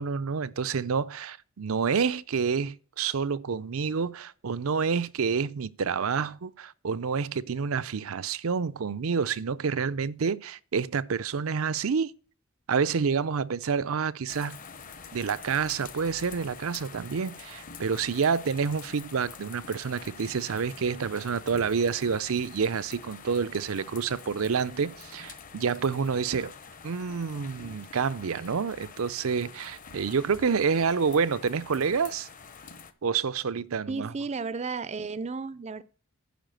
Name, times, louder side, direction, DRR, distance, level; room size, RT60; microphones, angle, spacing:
voice 1, 0.0-12.1 12.7-14.6 15.1-26.5 26.8-32.3 33.0-34.1, right 6 dB, 80° right, 0.5 m, -28 dB
sound 1, 14.3-32.9, left 5 dB, 40° left, 0.9 m, -46 dB
voice 2, 33.9-35.8, right 4 dB, 30° right, 0.4 m, -33 dB
10.0 x 4.9 x 7.7 m
head